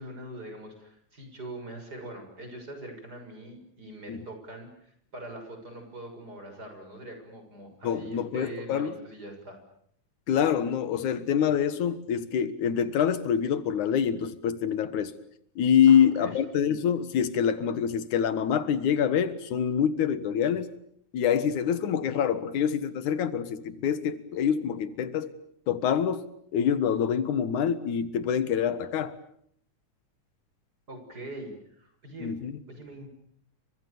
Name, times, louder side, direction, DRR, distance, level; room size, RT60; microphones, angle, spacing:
voice 1, 0.0-9.6 15.9-16.4 30.9-32.4 32.7-33.1, right 1 dB, 30° right, 7.1 m, -43 dB
voice 2, 7.8-8.9 10.3-15.1 15.6-20.7 21.1-25.3 25.7-29.2 32.2-32.5, left 8 dB, 90° left, 3.0 m, -26 dB
30.0 x 25.0 x 7.0 m
omnidirectional pair, 3.3 m